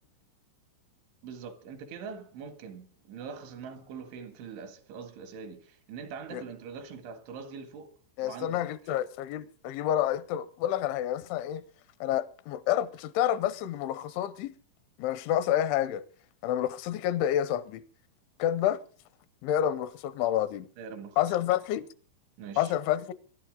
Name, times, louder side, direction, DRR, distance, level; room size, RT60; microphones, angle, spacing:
voice 1, 1.2-7.9 8.2-8.6 20.8-21.2 22.4-22.7, right 6 dB, 85° right, 4.2 m, -43 dB
voice 2, 8.2-11.6 12.0-14.5 15.0-16.0 16.4-17.8 18.4-18.8 19.4-20.7 21.2-21.8 22.6-23.1, left 11 dB, 85° left, 3.2 m, -29 dB
24.5 x 11.5 x 3.7 m
omnidirectional pair, 5.3 m